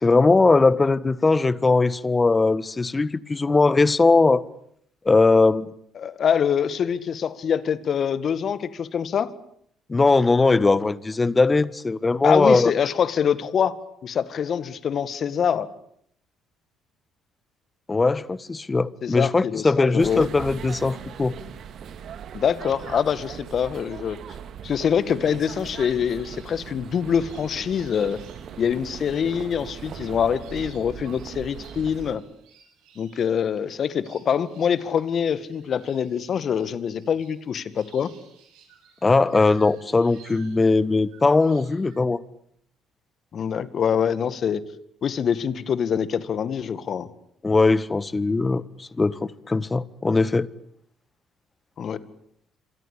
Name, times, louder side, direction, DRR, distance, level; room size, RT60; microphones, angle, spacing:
voice 1, 0.0-4.4 5.0-5.7 9.9-12.7 17.9-21.3 39.0-42.2 47.4-49.2 49.5-50.5, left 3 dB, 25° left, 1.5 m, -20 dB
voice 2, 6.0-9.3 12.2-15.7 19.0-20.3 22.3-24.2 24.6-28.2 28.6-32.2 33.0-38.1 43.3-44.6 45.0-47.1 51.8-52.0, left 7 dB, 55° left, 2.0 m, -25 dB
sound 1, 20.0-32.2, right 8 dB, 60° right, 2.3 m, -39 dB
sound 2, 26.0-42.0, right 7 dB, 75° right, 7.8 m, -55 dB
27.0 x 24.0 x 8.6 m
hypercardioid pair, 60°, 0 cm